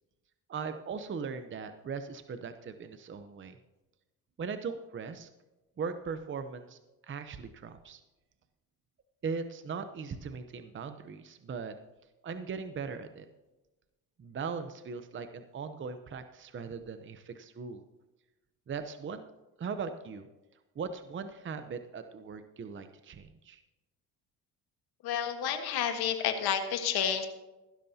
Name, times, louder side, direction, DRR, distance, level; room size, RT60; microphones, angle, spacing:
voice 1, 0.5-3.6 4.4-5.3 5.8-6.8 7.1-8.0 9.2-11.8 12.2-13.3 14.2-17.8 18.7-20.3 20.8-23.6, right 5 dB, 30° right, 9 dB, 0.8 m, -39 dB
voice 2, 25.0-27.3, left 8 dB, 75° left, 6 dB, 1.5 m, -30 dB
16.0 x 12.0 x 2.8 m, 1.1 s
cardioid pair, 100°, 38 cm